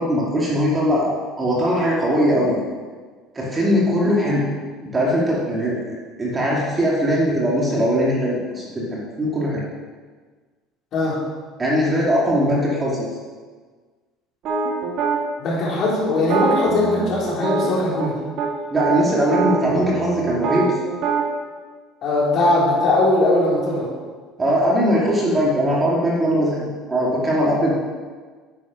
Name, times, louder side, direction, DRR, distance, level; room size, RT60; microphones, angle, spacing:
voice 1, 0.0-2.5 3.3-4.5 4.8-9.6 11.6-13.1 18.7-20.9 24.4-27.8, equal, 15° right, -5 dB, 2.4 m, -20 dB
sound 1, 14.4-15.2 16.1-18.1 18.4-18.5 18.8-21.2, right 4 dB, 50° right, 2.3 m, -24 dB
voice 2, 15.4-18.2 22.0-23.9, left 2 dB, 45° left, -5 dB, 4.0 m, -20 dB
9.8 x 8.3 x 6.2 m, 1.5 s
cardioid pair, 155°, 0 cm